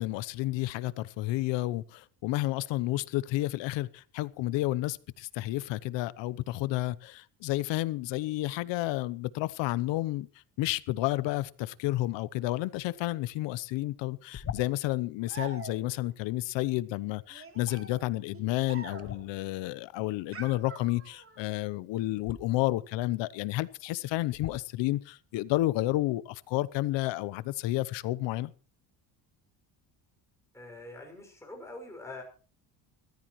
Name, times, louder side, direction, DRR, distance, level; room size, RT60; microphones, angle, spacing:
voice 1, 0.0-10.3 10.6-28.5, left 17 dB, 75° left, 0.9 m, -31 dB
sound 1, 14.3-15.0 19.0-19.7 22.2-22.4 23.4-23.5 24.3-24.8, left 8 dB, 35° left, 1.0 m, -41 dB
sound 2, 15.3-16.1 17.3-19.3 20.3-21.4, right 5 dB, 30° right, 3.1 m, -45 dB
voice 2, 30.5-32.2, left 2 dB, 5° left, 5.9 m, -44 dB
22.5 x 14.5 x 3.1 m
cardioid pair, 130°, 45 cm